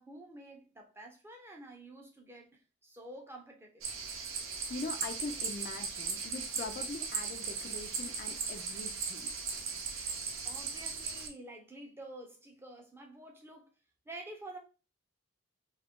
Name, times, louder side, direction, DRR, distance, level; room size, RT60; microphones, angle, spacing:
voice 1, 0.0-2.5 2.8-3.8 10.4-13.7 14.1-14.6, right 1 dB, 10° right, 0.5 m, -49 dB
sound 1, 3.8-11.3, right 5 dB, 80° right, 0.7 m, -38 dB
voice 2, 4.7-9.3, left 3 dB, 45° left, 0.3 m, -42 dB
2.6 x 2.4 x 3.6 m
head